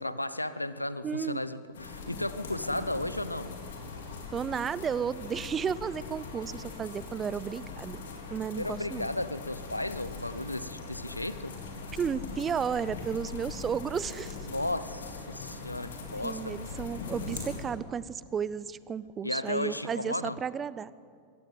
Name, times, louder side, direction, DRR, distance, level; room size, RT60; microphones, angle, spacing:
voice 1, 0.0-3.5 8.6-11.6 14.5-16.7 19.2-20.4, left 1 dB, 85° left, 15 dB, 0.8 m, -34 dB
voice 2, 1.0-1.4 4.3-8.0 8.3-9.1 11.9-14.4 16.2-20.9, right 7 dB, 20° right, 19 dB, 0.6 m, -33 dB
sound 1, 1.7-17.6, left 4 dB, 60° left, 3.6 m, -41 dB
23.0 x 17.0 x 7.9 m, 2.3 s
figure-of-eight pair, 90°, 0 cm